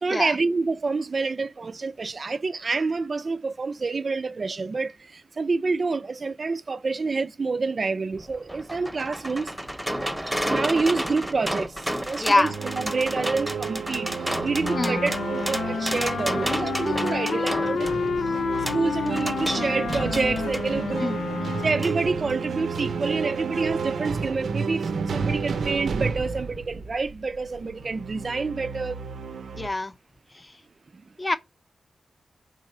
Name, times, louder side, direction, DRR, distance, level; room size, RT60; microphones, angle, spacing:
voice 1, 0.0-9.6 10.5-11.7 12.0-14.1 14.4-17.9 18.7-21.2 21.6-29.0 30.9-31.0, right 4 dB, 45° right, 0.4 m, -27 dB
sound 1, 8.1-20.7 21.8-22.0 22.3-22.4, equal, 5° right, 0.9 m, -32 dB
voice 2, 12.2-12.5 14.8-15.0 21.0-21.2 29.6-29.9 31.2-31.4, left 2 dB, 20° left, 0.7 m, -23 dB
sound 2, 12.4-29.7, right 5 dB, 80° right, 0.7 m, -31 dB
Wind instrument woodwind instrument, 14.6-22.0, left 6 dB, 75° left, 0.3 m, -30 dB
4.8 x 4.0 x 5.3 m
wide cardioid pair, 105°, 0 cm